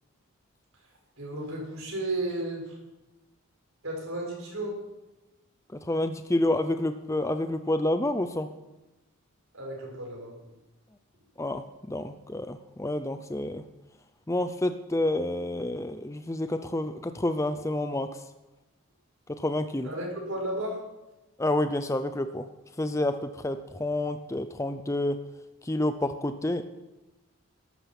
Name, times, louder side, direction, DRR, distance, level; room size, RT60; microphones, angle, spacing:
voice 1, 1.2-2.8 3.8-4.8 9.5-10.3 19.8-20.8, right 1 dB, 65° right, -1 dB, 5.6 m, -33 dB
voice 2, 5.9-8.5 11.4-13.6 14.3-18.1 19.4-19.9 21.4-22.5 22.8-25.2 25.6-26.6, left 1 dB, 15° left, 9 dB, 0.5 m, -29 dB
12.5 x 12.0 x 6.0 m, 1.0 s
head